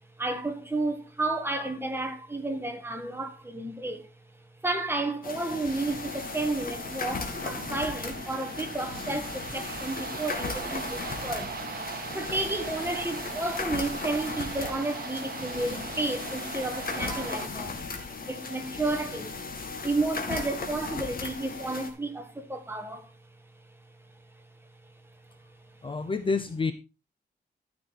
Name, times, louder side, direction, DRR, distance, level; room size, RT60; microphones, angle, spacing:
voice 1, 0.2-4.1 4.6-11.6 12.1-17.8 18.3-19.4 19.8-23.1, right 2 dB, 10° right, 1.7 m, -32 dB
sound 1, 5.2-21.9, left 4 dB, 50° left, 2.4 m, -37 dB
sound 2, 5.7-17.5, right 6 dB, 55° right, 1.5 m, -40 dB
voice 2, 25.8-26.7, left 4 dB, 30° left, 0.8 m, -28 dB
13.0 x 6.2 x 4.6 m
wide cardioid pair, 155°, 18 cm